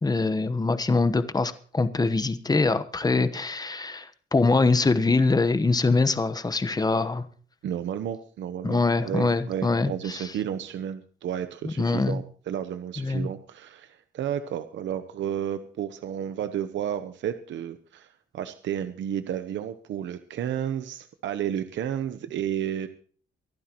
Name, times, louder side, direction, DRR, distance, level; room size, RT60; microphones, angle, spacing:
voice 1, 0.0-7.2 8.6-10.3 11.6-12.2 13.0-13.3, left 3 dB, 20° left, 12 dB, 1.1 m, -24 dB
voice 2, 7.6-22.9, right 9 dB, 70° right, 10 dB, 0.9 m, -32 dB
24.5 x 11.5 x 3.0 m, 0.43 s
cardioid pair, 90°, 20 cm